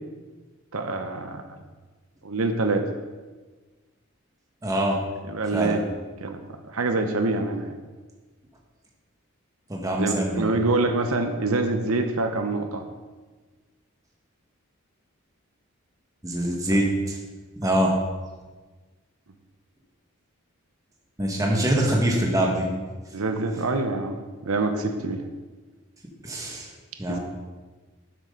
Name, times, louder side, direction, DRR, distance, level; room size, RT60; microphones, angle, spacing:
voice 1, 0.7-1.4 2.2-2.8 5.3-5.9 6.2-6.4 6.7-7.8 10.0-12.9 16.7-16.8 23.1-25.2 27.1-27.2, right 2 dB, 90° right, 6 dB, 0.9 m, -25 dB
voice 2, 4.6-5.0 5.5-5.7 9.7-10.5 16.2-17.2 17.6-18.0 21.2-22.7 26.2-26.7 27.0-27.2, right 1 dB, 15° right, -1 dB, 1.6 m, -24 dB
12.5 x 7.6 x 4.0 m, 1.3 s
head